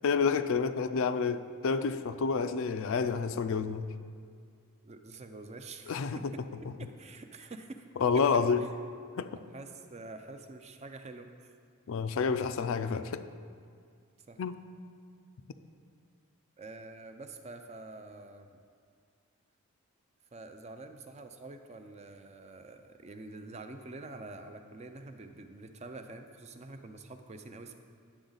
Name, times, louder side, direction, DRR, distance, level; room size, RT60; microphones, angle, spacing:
voice 1, 0.0-3.9 5.9-6.2 8.0-8.6 9.2-9.3 11.9-13.3 14.4-14.6, left 5 dB, 60° left, 11 dB, 0.4 m, -29 dB
voice 2, 4.8-6.4 6.8-7.8 8.1-8.7 9.5-11.6 14.3-14.4 16.6-18.6 20.3-27.7, right 2 dB, 30° right, 7 dB, 0.5 m, -47 dB
10.0 x 7.1 x 3.9 m, 2.2 s
head